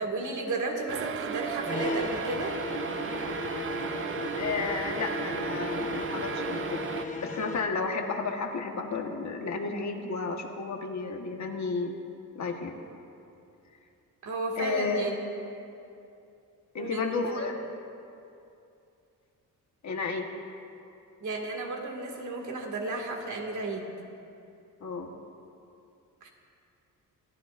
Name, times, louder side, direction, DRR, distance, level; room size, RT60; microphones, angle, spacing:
voice 1, 0.0-2.6 14.2-15.1 16.8-17.5 21.2-23.9 26.2-26.3, right 3 dB, 60° right, 0 dB, 2.1 m, -33 dB
sound 1, 0.9-7.1, right 8 dB, 40° right, 0.5 m, -35 dB
sound 2, 1.6-7.8, left 3 dB, 20° left, 0.9 m, -35 dB
voice 2, 4.4-6.8 7.2-11.9 12.3-12.8 14.6-15.1 16.7-17.6 19.8-20.3 24.8-25.1, left 4 dB, 55° left, 3 dB, 1.3 m, -32 dB
27.5 x 14.0 x 2.5 m, 2.6 s
wide cardioid pair, 155°, 34 cm